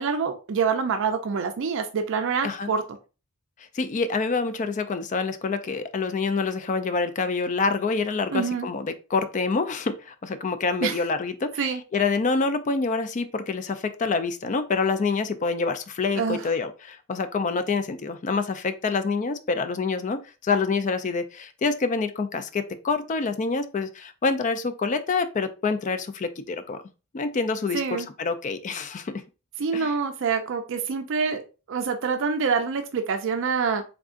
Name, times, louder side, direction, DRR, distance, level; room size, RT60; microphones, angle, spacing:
voice 1, 0.0-2.8 8.3-8.7 10.8-11.0 11.6-11.8 16.1-16.5 27.7-28.1 29.6-31.4 31.7-33.8, right 5 dB, 55° right, 7 dB, 0.4 m, -26 dB
voice 2, 3.7-26.8 27.1-29.2 29.7-29.9, left 4 dB, 35° left, 10 dB, 0.3 m, -27 dB
3.7 x 3.5 x 2.4 m, 0.32 s
head